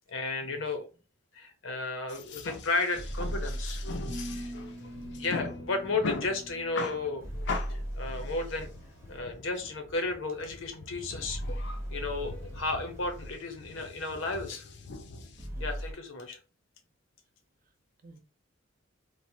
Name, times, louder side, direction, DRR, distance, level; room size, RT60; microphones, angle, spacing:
voice 1, 0.1-0.9 1.3-3.8 4.4-4.5 5.2-7.2 7.7-8.7 9.1-11.6 11.9-14.6 15.6-16.4, left 3 dB, 80° left, 0.8 m, -33 dB
sound 1, 2.1-15.5, left 3 dB, 60° left, 0.4 m, -41 dB
sound 2, 2.9-5.2 7.2-9.3 11.2-13.4 15.4-15.9, equal, 15° right, 0.7 m, -38 dB
sound 3, 4.1-7.2, equal, 75° right, 0.7 m, -43 dB
voice 2, 11.5-12.0 15.5-15.7 18.0-18.2, right 3 dB, 45° right, 0.4 m, -54 dB
3.1 x 2.0 x 2.6 m
head